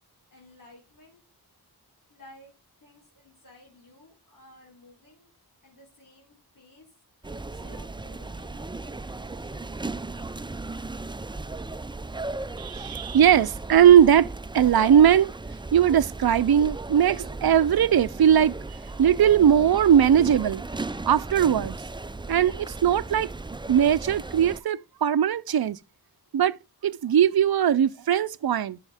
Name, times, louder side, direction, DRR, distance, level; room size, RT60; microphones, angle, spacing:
voice 1, 0.3-1.2 2.1-2.5 2.8-5.3 5.6-6.9 7.3-9.7, left 1 dB, 55° left, 3.6 m, -54 dB
sound 1, 7.2-24.6, right 3 dB, 15° right, 0.4 m, -36 dB
voice 2, 12.6-15.3 15.7-20.6 21.1-21.8 22.3-23.3 23.7-25.8 26.3-26.6 26.8-28.8, right 9 dB, 65° right, 0.5 m, -20 dB
10.5 x 6.2 x 3.5 m
wide cardioid pair, 80°, 39 cm